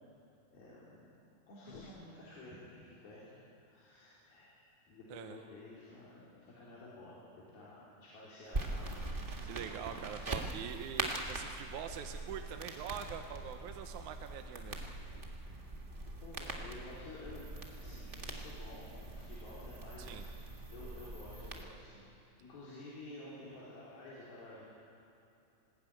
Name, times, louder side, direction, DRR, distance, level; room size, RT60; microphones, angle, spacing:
voice 1, 0.5-1.1 1.5-9.2 16.2-17.5 17.8-24.7, left 2 dB, 85° left, -8 dB, 5.8 m, -52 dB
sound 1, 1.6-2.9, left 4 dB, 50° left, 1.7 m, -56 dB
sound 2, 8.5-21.6, right 2 dB, 45° right, 0.6 m, -42 dB
voice 2, 9.4-14.8 20.1-20.3, right 8 dB, 70° right, 6 dB, 2.0 m, -44 dB
19.5 x 19.0 x 9.1 m, 2.9 s
omnidirectional pair, 4.2 m